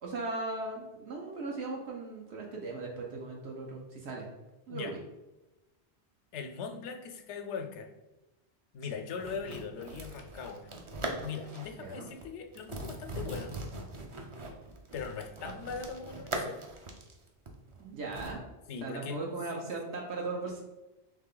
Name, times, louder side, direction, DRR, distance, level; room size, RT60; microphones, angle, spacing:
voice 1, 0.0-4.3 4.7-5.0 11.7-12.1 17.8-18.4 18.8-20.6, right 3 dB, 75° right, -1 dB, 1.0 m, -38 dB
voice 2, 6.3-7.9 8.7-10.7 11.2-13.5 14.9-16.6 18.7-19.7, left 6 dB, 85° left, 6 dB, 0.9 m, -40 dB
sound 1, 9.2-11.8 12.1-12.3 12.5-18.3, right 2 dB, 40° right, 0.4 m, -40 dB
3.5 x 3.2 x 3.7 m, 1.0 s
omnidirectional pair, 1.2 m